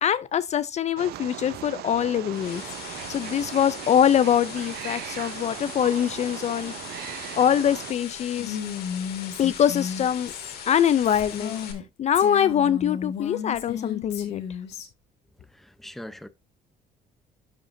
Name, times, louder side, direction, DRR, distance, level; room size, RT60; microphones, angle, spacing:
voice 1, 0.0-6.7 7.4-8.6 9.4-10.3 10.7-11.6 12.0-14.4, left 9 dB, 40° left, 0.4 m, -23 dB
Wild animals, 1.0-7.9, right 15 dB, 70° right, 0.5 m, -38 dB
sound 1, 1.9-11.7, left 7 dB, 65° left, 2.1 m, -40 dB
Female speech woman speaking, 8.4-11.8 12.1-14.9, left 8 dB, 85° left, 1.7 m, -34 dB
voice 2, 15.5-16.3, left 1 dB, ahead, 0.6 m, -41 dB
12.5 x 5.0 x 2.6 m
cardioid pair, 110°, 17 cm